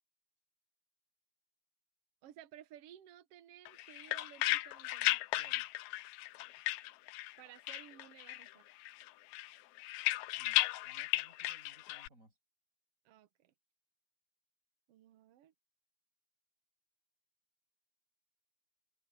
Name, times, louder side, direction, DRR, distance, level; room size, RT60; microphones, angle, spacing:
voice 1, 2.2-5.2 7.4-8.7 13.0-13.5 14.9-15.5, right 11 dB, 75° right, 1.4 m, -57 dB
sound 1, 3.7-7.4 7.7-8.5 8.8-12.1, left 18 dB, 85° left, 1.6 m, -35 dB
voice 2, 5.4-5.7 10.4-12.4, right 1 dB, 20° right, 7.3 m, -64 dB
omnidirectional pair, 4.0 m